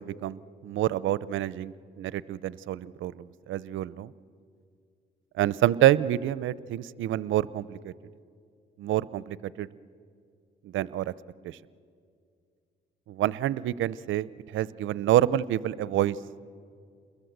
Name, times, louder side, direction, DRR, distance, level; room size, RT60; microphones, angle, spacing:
voice 1, 0.1-0.4 0.6-4.1 5.4-7.9 8.8-9.7 10.7-11.1 11.4-11.6 13.1-16.2, right 13 dB, 80° right, 19 dB, 0.6 m, -27 dB
29.0 x 21.5 x 8.0 m, 2.3 s
cardioid pair, 90°, 20 cm